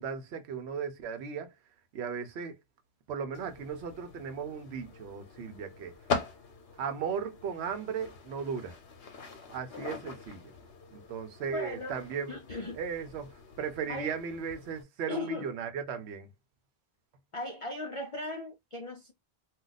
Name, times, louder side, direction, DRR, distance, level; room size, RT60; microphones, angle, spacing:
voice 1, 0.0-1.5 1.9-2.6 3.1-5.9 6.8-8.8 9.5-10.4 10.9-12.4 12.8-16.3, right 6 dB, 75° right, 0.9 m, -36 dB
sound 1, 3.3-14.8, left 4 dB, 70° left, 1.0 m, -42 dB
voice 2, 11.5-12.0 12.3-12.8 13.9-14.1 15.1-15.5 17.3-19.1, left 2 dB, 50° left, 0.4 m, -37 dB
2.3 x 2.3 x 3.9 m
omnidirectional pair, 1.1 m